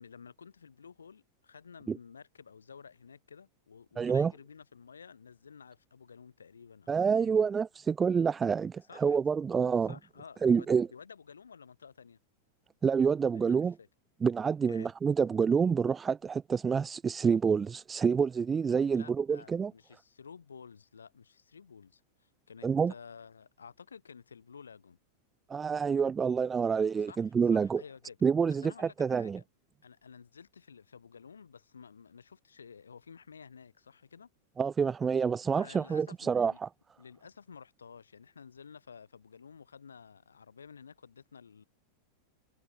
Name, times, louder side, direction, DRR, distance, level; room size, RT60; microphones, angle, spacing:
voice 1, 0.0-7.3 8.8-9.2 9.8-12.2 13.3-13.9 14.7-14.9 18.9-25.0 27.1-28.2 28.5-29.4 29.8-34.3 35.5-36.6 37.0-41.6, left 6 dB, 70° left, 5.7 m, -52 dB
voice 2, 4.0-4.3 6.9-9.9 10.4-10.9 12.8-13.7 14.2-19.7 22.6-22.9 25.5-27.8 28.2-28.7 29.0-29.4 34.6-36.7, right 6 dB, 20° right, 0.3 m, -27 dB
figure-of-eight pair, 90°, 0 cm